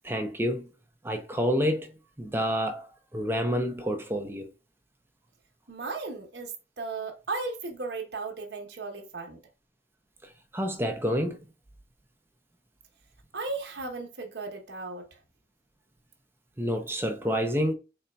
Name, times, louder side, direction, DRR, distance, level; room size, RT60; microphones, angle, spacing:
voice 1, 0.0-0.6 1.0-1.9 2.2-4.5 10.5-11.4 16.6-17.7, equal, 10° right, 0.6 m, -28 dB
voice 2, 5.7-9.4 13.3-15.2, right 3 dB, 65° right, 1.0 m, -36 dB
4.2 x 4.0 x 2.2 m
head